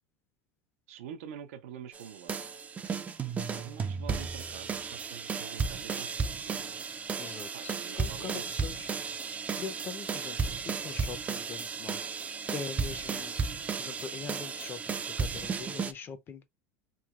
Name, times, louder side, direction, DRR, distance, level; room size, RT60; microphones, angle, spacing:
voice 1, 0.9-2.4 3.5-6.9 7.5-8.5, right 9 dB, 80° right, 0.5 m, -46 dB
sound 1, 1.9-15.9, right 5 dB, 20° right, 0.3 m, -34 dB
voice 2, 7.2-8.9 9.6-12.0 12.5-13.4 13.8-16.4, left 6 dB, 30° left, 0.5 m, -42 dB
3.1 x 2.9 x 2.3 m
supercardioid pair, 125°, 7 cm